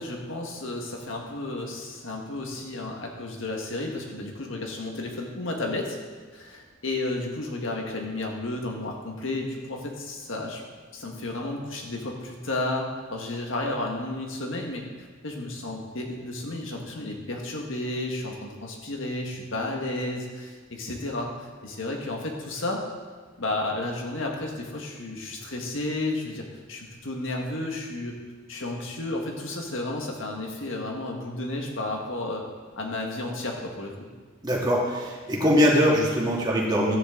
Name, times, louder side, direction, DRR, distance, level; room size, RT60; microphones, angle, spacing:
voice 1, 0.0-6.0 6.3-10.6 10.9-14.8 15.2-22.8 23.4-28.2 28.5-32.4 32.8-34.1, left 2 dB, 70° left, 1 dB, 1.7 m, -32 dB
voice 2, 34.4-37.0, equal, 20° right, -3 dB, 2.0 m, -22 dB
13.0 x 9.6 x 3.9 m, 1.5 s
head